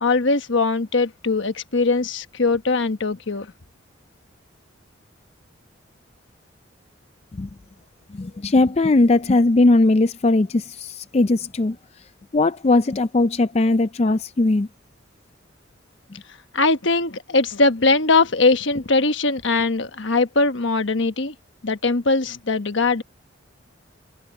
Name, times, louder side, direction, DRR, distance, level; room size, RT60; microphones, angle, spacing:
voice 1, 0.0-3.5 16.5-21.3 21.6-23.0, left 3 dB, 70° left, 1.2 m, -21 dB
voice 2, 8.1-11.8 12.3-14.7, left 2 dB, 30° left, 0.4 m, -19 dB
head